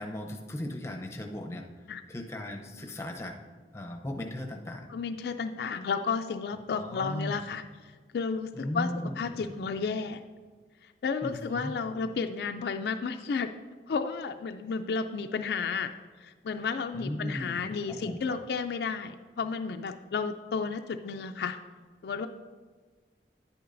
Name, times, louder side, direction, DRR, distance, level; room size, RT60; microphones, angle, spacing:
voice 1, 0.0-1.7 2.1-3.4 3.7-4.9 6.8-7.5 8.5-9.7 11.2-11.7 16.9-18.4, left 1 dB, 15° left, 3 dB, 0.6 m, -37 dB
voice 2, 4.9-7.6 8.1-10.2 11.0-13.5 13.9-15.9 16.2-21.6 22.0-22.3, left 5 dB, 65° left, 7 dB, 0.3 m, -32 dB
10.0 x 8.6 x 2.6 m, 1.5 s
head